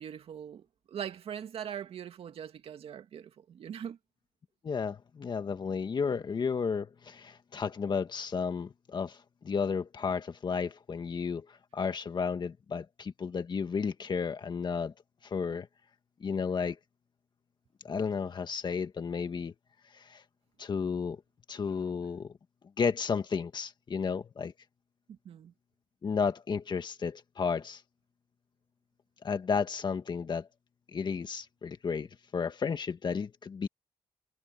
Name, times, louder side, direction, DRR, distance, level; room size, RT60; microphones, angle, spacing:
voice 1, 0.0-4.0 25.1-25.5, right 9 dB, 70° right, 2.3 m, -41 dB
voice 2, 4.6-14.9 15.2-15.7 16.2-16.8 17.8-19.5 19.9-20.2 20.6-21.2 21.5-22.3 22.8-24.5 26.0-27.8 29.2-30.5 30.9-32.1 32.3-33.7, left 5 dB, 45° left, 1.9 m, -33 dB
cardioid pair, 85°, 10 cm